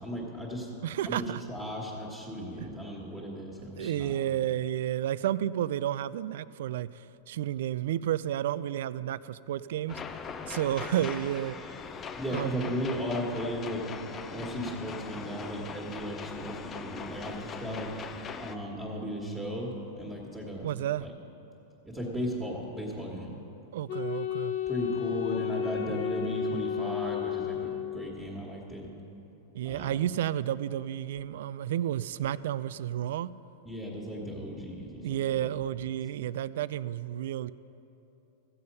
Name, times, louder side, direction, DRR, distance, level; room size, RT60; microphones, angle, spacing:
voice 1, 0.0-0.7 1.1-4.4 12.2-13.8 14.3-17.9 18.4-20.7 21.0-21.1 21.8-23.3 24.7-28.9 29.6-29.9 33.6-35.5, equal, 5° right, -6 dB, 1.7 m, -36 dB
voice 2, 0.8-1.4 3.8-10.0 10.5-11.6 12.3-12.7 20.6-21.1 23.7-24.5 29.5-33.3 35.0-37.5, right 11 dB, 70° right, 17 dB, 0.3 m, -31 dB
sound 1, 9.9-18.6, left 5 dB, 25° left, 0.6 m, -41 dB
Wind instrument woodwind instrument, 23.9-28.3, left 9 dB, 60° left, 0.8 m, -33 dB
14.5 x 7.7 x 5.5 m, 3.0 s
supercardioid pair, 135°, 0 cm